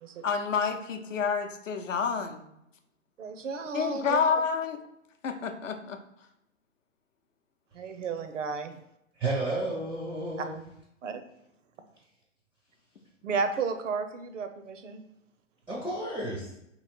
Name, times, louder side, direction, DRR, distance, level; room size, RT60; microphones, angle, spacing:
voice 1, 0.2-2.4 3.7-4.8 5.2-6.0, left 6 dB, 75° left, 5 dB, 0.7 m, -29 dB
voice 2, 3.2-4.2 7.7-8.7 10.4-10.5 11.0-11.2 13.2-15.0, right 5 dB, 70° right, 8 dB, 0.7 m, -33 dB
voice 3, 9.2-10.6 15.7-16.5, right 2 dB, 5° right, -4 dB, 0.4 m, -32 dB
3.1 x 2.8 x 4.3 m, 0.81 s
figure-of-eight pair, 115°, 38 cm